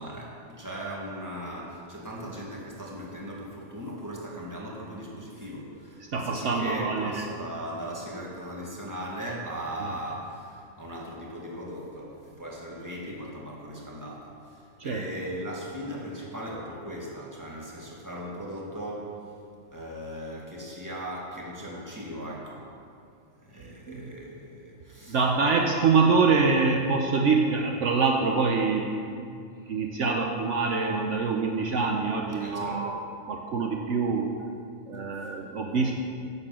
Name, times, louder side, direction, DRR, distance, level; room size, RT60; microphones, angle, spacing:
voice 1, 0.0-19.2 19.7-22.6 23.4-25.2 29.6-29.7 32.4-32.9, equal, 15° right, -3 dB, 2.0 m, -38 dB
voice 2, 6.1-7.3 9.8-9.9 14.8-15.1 25.1-29.3 29.7-33.0 33.3-34.3 34.9-35.9, right 4 dB, 65° right, 1 dB, 1.1 m, -25 dB
11.0 x 6.7 x 7.6 m, 2.3 s
omnidirectional pair, 1.4 m